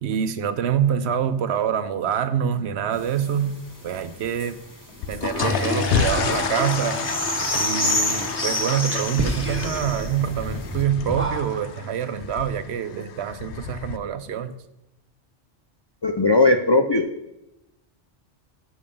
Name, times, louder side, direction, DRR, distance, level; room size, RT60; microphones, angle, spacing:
voice 1, 0.0-4.6 5.1-7.1 7.5-14.5, right 8 dB, 70° right, 0.9 m, -26 dB
sound 1, 2.9-10.8, left 1 dB, 15° left, 1.2 m, -30 dB
sound 2, 4.9-14.0, left 7 dB, 75° left, 0.9 m, -30 dB
Whispering, 5.4-11.8, right 1 dB, 15° right, 0.7 m, -30 dB
voice 2, 16.0-17.1, left 2 dB, 45° left, 0.3 m, -18 dB
7.1 x 5.3 x 6.8 m
omnidirectional pair, 1.2 m